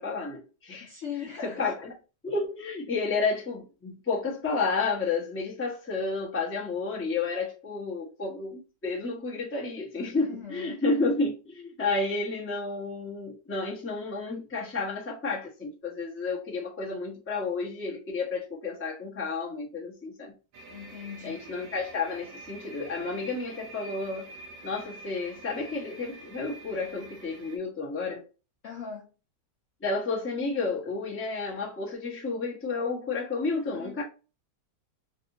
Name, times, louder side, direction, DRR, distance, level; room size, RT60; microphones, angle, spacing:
voice 1, 0.0-0.9 1.4-1.7 2.2-20.3 21.2-24.3 24.6-28.2 29.8-34.0, left 3 dB, 15° left, 0.4 m, -31 dB
voice 2, 0.8-1.8 10.2-10.8 20.7-21.4 28.6-29.1 33.5-34.0, left 7 dB, 75° left, 0.7 m, -40 dB
sound 1, 20.5-27.6, right 2 dB, 85° right, 1.4 m, -46 dB
3.6 x 2.6 x 2.6 m
omnidirectional pair, 2.0 m